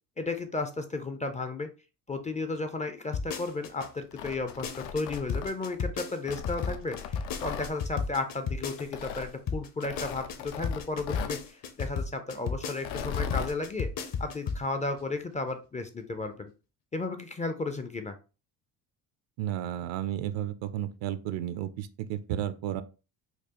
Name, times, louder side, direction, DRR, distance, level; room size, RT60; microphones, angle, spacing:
voice 1, 0.2-1.7 2.1-16.5 16.9-18.2, left 3 dB, 20° left, 0.3 m, -34 dB
sound 1, 3.1-3.9 4.3-9.2 9.5-14.7 15.0-15.1, left 5 dB, 50° left, 0.7 m, -33 dB
Tearing, 4.0-5.8 6.3-7.7 8.8-9.3 9.8-11.4 12.7-13.5, left 7 dB, 85° left, 0.6 m, -38 dB
voice 2, 19.4-22.8, right 11 dB, 75° right, 0.6 m, -33 dB
4.4 x 2.4 x 2.8 m
cardioid pair, 90°, 44 cm